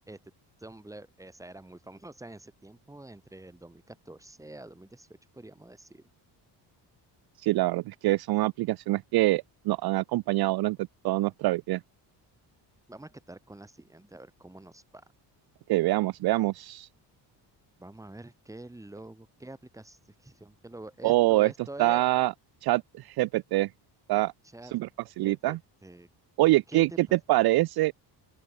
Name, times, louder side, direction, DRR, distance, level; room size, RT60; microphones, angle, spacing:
voice 1, 0.6-6.0 12.9-15.0 17.8-22.1 24.4-24.7 25.2-26.1 26.7-27.2, right 2 dB, 5° right, 3.1 m, -46 dB
voice 2, 7.4-11.8 15.7-16.9 21.0-21.5 21.8-22.3 22.6-23.7 24.1-24.3 24.7-24.9 25.2-25.6 26.4-27.9, right 18 dB, 60° right, 0.5 m, -25 dB
open air
cardioid pair, 155°, 42 cm